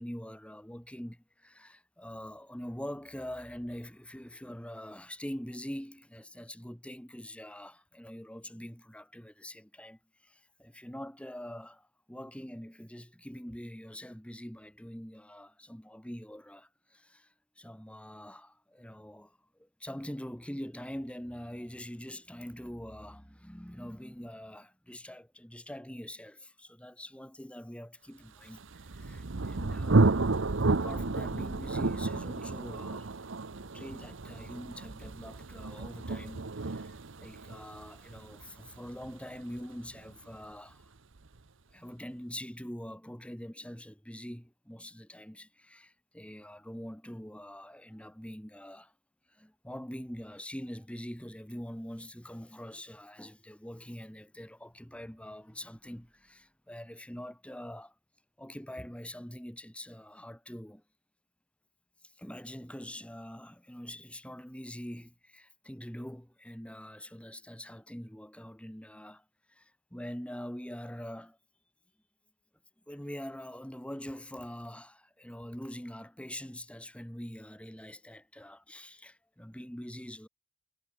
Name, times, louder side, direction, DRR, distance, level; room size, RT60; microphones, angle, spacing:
voice 1, 0.0-30.3 30.6-33.1 33.6-40.9 41.7-48.9 49.3-57.9 58.4-60.8 62.0-71.4 72.9-80.3, equal, 5° left, 2.0 m, -44 dB
Thunder, 28.6-40.1, right 3 dB, 65° right, 0.9 m, -31 dB
head